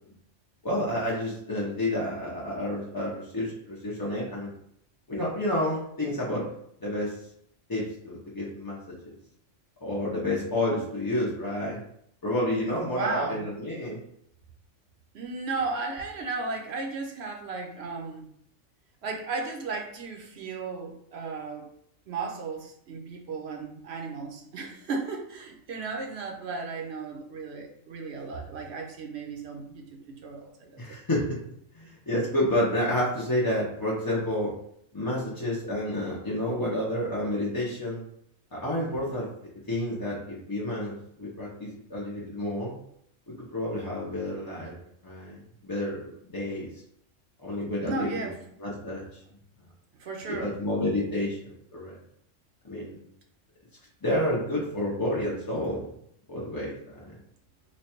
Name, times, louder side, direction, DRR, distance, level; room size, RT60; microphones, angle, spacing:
voice 1, 0.6-4.5 5.1-6.5 6.8-7.1 7.7-9.1 9.8-11.8 12.2-14.0 30.8-31.3 31.7-34.5 34.9-38.0 38.5-39.3 39.7-42.7 43.3-44.7 45.0-46.7 47.4-48.3 48.6-49.2 50.3-51.9 52.6-53.0 54.0-55.8 56.3-57.1, left 1 dB, 30° left, -6 dB, 0.4 m, -30 dB
voice 2, 12.9-13.5 15.1-18.3 19.0-21.7 22.1-30.8 47.8-48.4 50.0-50.6, right 4 dB, 60° right, 1 dB, 0.9 m, -35 dB
3.1 x 2.2 x 4.2 m, 0.70 s
omnidirectional pair, 1.3 m